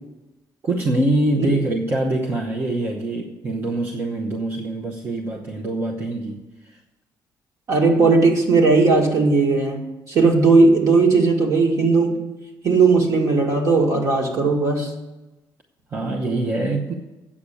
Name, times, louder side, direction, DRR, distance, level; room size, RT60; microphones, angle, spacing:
voice 1, 0.6-6.8 15.9-16.9, right 2 dB, 30° right, 0 dB, 0.9 m, -24 dB
voice 2, 7.7-12.2 12.6-14.9, right 3 dB, 50° right, 1 dB, 2.0 m, -17 dB
8.6 x 6.7 x 8.5 m, 1.1 s
cardioid pair, 175°, 7 cm